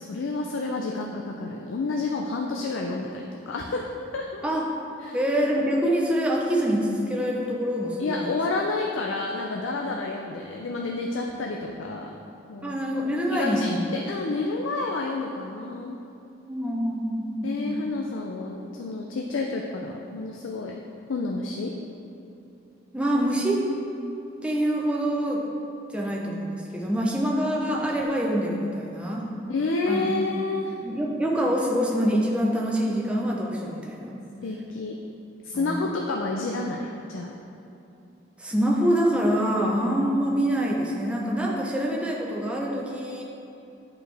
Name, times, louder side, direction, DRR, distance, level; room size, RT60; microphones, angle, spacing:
voice 1, 0.0-3.9 4.1-4.4 5.0-5.2 8.0-12.1 12.5-12.8 13.3-16.0 17.4-20.8 21.1-21.7 29.5-30.7 34.4-35.0 35.4-37.3 40.0-40.3, left 3 dB, 90° left, 1 dB, 0.5 m, -30 dB
voice 2, 5.1-8.3 12.6-13.8 16.5-17.8 22.9-23.7 24.4-25.4 25.9-29.3 29.9-30.2 30.8-34.2 35.5-35.8 38.4-43.2, equal, 5° right, -3 dB, 0.7 m, -25 dB
8.7 x 4.6 x 3.4 m, 2.7 s
head